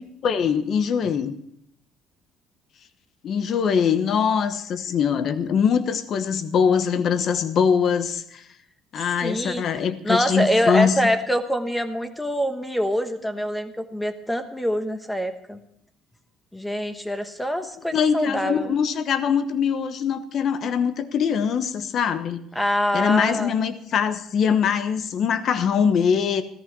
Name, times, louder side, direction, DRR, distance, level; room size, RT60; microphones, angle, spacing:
voice 1, 0.0-1.3 3.2-8.4 8.9-10.9 17.9-22.4 22.9-26.4, left 7 dB, 50° left, 12 dB, 1.0 m, -22 dB
voice 2, 9.0-15.6 16.5-18.7 22.5-23.5, equal, 5° left, 8 dB, 1.2 m, -25 dB
14.0 x 13.5 x 4.7 m, 0.72 s
cardioid pair, 130°, 0 cm